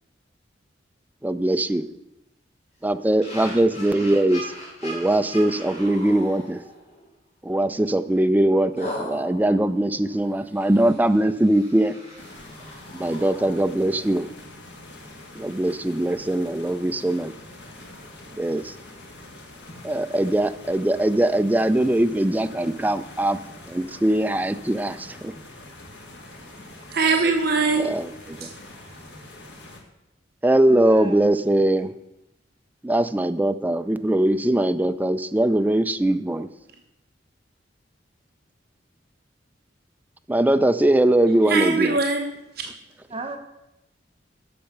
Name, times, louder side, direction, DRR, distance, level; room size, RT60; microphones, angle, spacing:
voice 1, 1.2-1.9 2.8-4.5 4.8-6.6 7.4-11.9 12.9-14.3 15.4-17.3 18.4-18.7 19.8-23.4 23.7-25.3 27.8-28.5 30.4-31.9 32.8-36.5 40.3-42.0, right 1 dB, 10° right, 10 dB, 0.4 m, -21 dB
sound 1, 3.2-7.1 7.5-7.7 8.8-14.3, equal, 40° left, 3.2 m, -39 dB
sound 2, 12.1-29.8, left 2 dB, 70° left, 1.7 m, -44 dB
voice 2, 26.9-27.9 28.4-28.5 41.5-42.7, right 4 dB, 55° right, 3 dB, 0.7 m, -22 dB
voice 3, 30.7-31.3 43.1-43.4, right 1 dB, 30° right, 4 dB, 1.0 m, -33 dB
8.5 x 6.5 x 5.9 m, 0.90 s
head